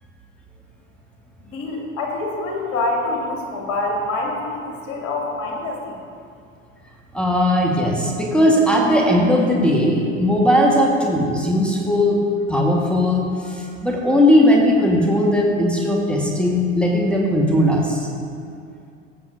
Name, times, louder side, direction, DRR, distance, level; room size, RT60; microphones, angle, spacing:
voice 1, 1.4-6.0, left 2 dB, 50° left, -1 dB, 2.5 m, -26 dB
voice 2, 7.1-12.2 12.5-18.1, left 1 dB, 5° left, -2 dB, 1.4 m, -18 dB
16.0 x 7.9 x 2.6 m, 2.4 s
figure-of-eight pair, 80°, 38 cm